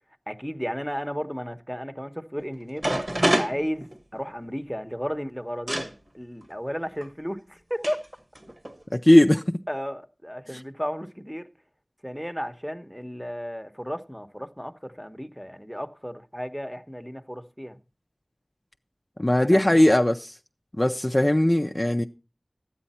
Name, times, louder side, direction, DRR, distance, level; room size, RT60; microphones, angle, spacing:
voice 1, 0.3-2.9 3.2-8.0 9.7-11.5 12.0-17.8 19.4-19.7, equal, ahead, 1.0 m, -34 dB
sound 1, 2.4-2.5 2.8-4.4 5.7-5.9 7.0-7.1 7.8-8.1 8.4-8.8, right 1 dB, 50° right, 1.4 m, -26 dB
voice 2, 8.9-9.6 10.5-10.6 19.2-20.3 20.8-22.0, left 1 dB, 30° left, 0.5 m, -19 dB
12.5 x 9.1 x 4.2 m
wide cardioid pair, 40°, 0 cm